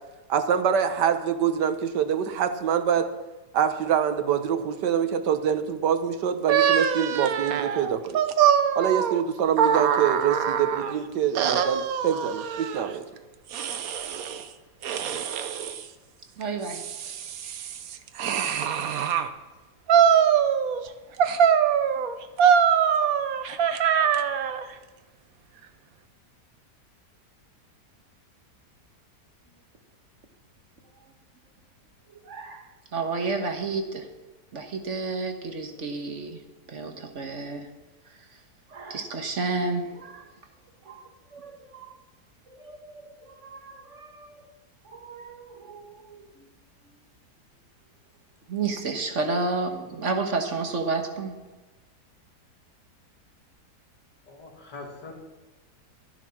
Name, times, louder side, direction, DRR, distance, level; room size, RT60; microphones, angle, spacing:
voice 1, 0.3-3.1 3.5-8.2 8.8-13.0, right 8 dB, 80° right, 10 dB, 1.6 m, -25 dB
sound 1, 6.5-10.9 11.4-12.9 13.5-14.4 14.8-15.8 16.4-19.3 19.9-20.9 21.2-24.6, right 8 dB, 65° right, 1.2 m, -23 dB
voice 2, 16.4-16.9 32.1-34.1 34.5-36.4 36.7-37.7 38.7-40.3 40.9-41.9 42.5-44.5 44.9-46.3 48.5-51.4, right 3 dB, 45° right, 4 dB, 1.6 m, -31 dB
voice 3, 54.3-55.1, left 3 dB, 85° left, 1 dB, 2.9 m, -42 dB
12.5 x 11.0 x 6.0 m, 1.2 s
omnidirectional pair, 1.8 m